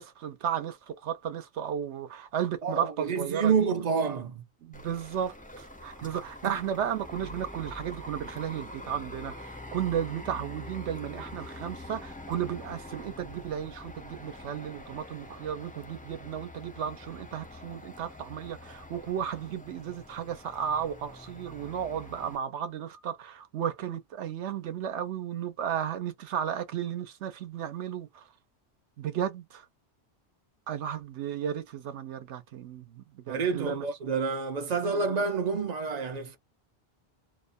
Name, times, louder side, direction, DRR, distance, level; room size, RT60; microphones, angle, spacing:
voice 1, 0.0-3.7 4.6-28.3 29.0-29.6 30.7-33.9 34.9-35.2, right 9 dB, 85° right, 1.0 m, -34 dB
voice 2, 2.6-4.4 6.4-6.6 33.3-36.4, right 5 dB, 55° right, 0.5 m, -28 dB
sound 1, 4.7-22.4, left 1 dB, 15° left, 0.3 m, -45 dB
2.7 x 2.1 x 2.5 m
omnidirectional pair, 1.2 m